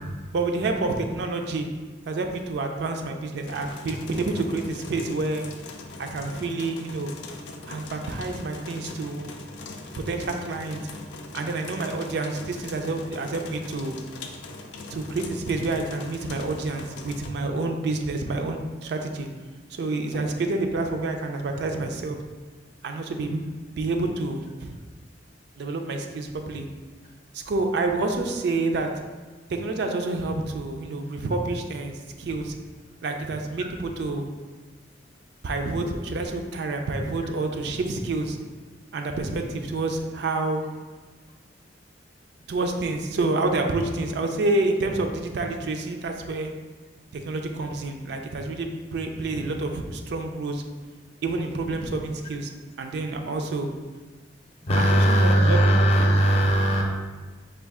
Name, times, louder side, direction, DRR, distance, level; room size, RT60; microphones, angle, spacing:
voice 1, 0.3-1.7 2.0-5.5 6.0-7.1 7.7-9.3 10.0-10.8 11.3-14.0 14.9-19.3 19.7-22.2 22.8-23.4 23.8-24.8 25.6-26.7 27.3-28.9 29.5-32.5 33.0-34.3 35.4-38.4 38.9-40.6 42.5-46.5 47.1-50.6 51.2-52.5 52.8-53.7 54.8-55.6, right 2 dB, 65° right, 4 dB, 0.4 m, -28 dB
sound 1, 3.5-17.3, left 3 dB, 80° left, 0.4 m, -41 dB
voice 2, 54.6-56.8, right 1 dB, 35° left, 0 dB, 0.6 m, -19 dB
4.4 x 2.3 x 3.5 m, 1.3 s
head